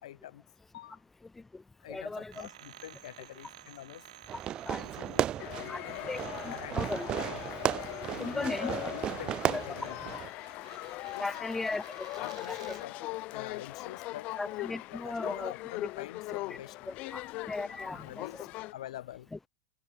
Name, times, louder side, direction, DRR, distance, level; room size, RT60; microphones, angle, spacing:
voice 1, 0.0-0.4 0.7-1.0 1.8-4.1 4.8-7.4 8.1-10.2 11.1-11.3 12.2-14.3 14.9-16.8 17.0-17.1 17.9-19.3, left 13 dB, 80° left, 5.2 m, -46 dB
voice 2, 1.9-2.5 4.6-4.8 5.7-5.8 6.1-7.1 8.2-8.7 9.5-9.6 11.2-12.8 14.4-15.5 15.8-15.9 16.5-16.6 16.9-18.5 19.3-19.4, left 3 dB, 10° left, 1.6 m, -37 dB
sound 1, 2.3-12.9, right 12 dB, 90° right, 3.5 m, -54 dB
Fireworks, 4.3-10.3, right 11 dB, 30° right, 1.2 m, -34 dB
sound 2, 5.4-18.7, left 20 dB, 40° left, 0.5 m, -40 dB
supercardioid pair, 145°, 3 cm